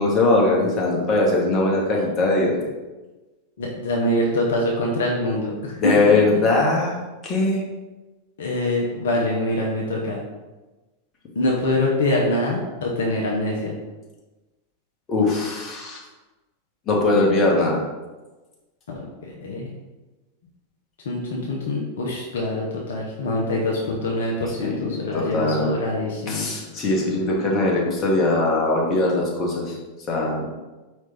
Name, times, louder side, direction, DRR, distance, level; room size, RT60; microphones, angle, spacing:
voice 1, 0.0-2.5 5.8-7.6 15.1-16.0 16.9-17.8 24.6-24.8 25.1-25.8 26.3-29.8 30.1-30.5, left 2 dB, 25° left, -2 dB, 1.2 m, -21 dB
voice 2, 3.6-5.9 8.4-10.2 11.3-13.8 18.9-19.7 21.0-26.5, left 1 dB, 60° left, -3 dB, 0.7 m, -24 dB
4.8 x 3.2 x 3.4 m, 1.2 s
figure-of-eight pair, 90°, 0 cm